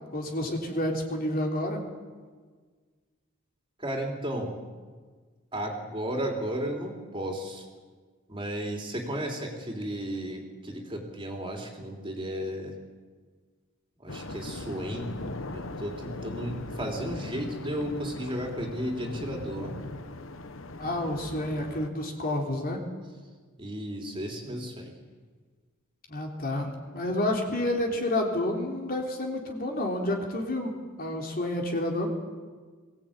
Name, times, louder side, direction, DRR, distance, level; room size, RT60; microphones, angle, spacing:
voice 1, 0.1-1.8 20.8-22.8 26.1-30.7 31.0-32.1, left 1 dB, 45° left, 1 dB, 3.4 m, -29 dB
voice 2, 3.8-4.5 5.5-7.6 8.3-12.7 14.0-15.2 15.5-19.7 23.6-24.9, equal, 25° right, 1 dB, 3.4 m, -34 dB
sound 1, 14.1-21.9, left 2 dB, 65° left, 1.2 m, -39 dB
22.5 x 17.5 x 8.9 m, 1.5 s
head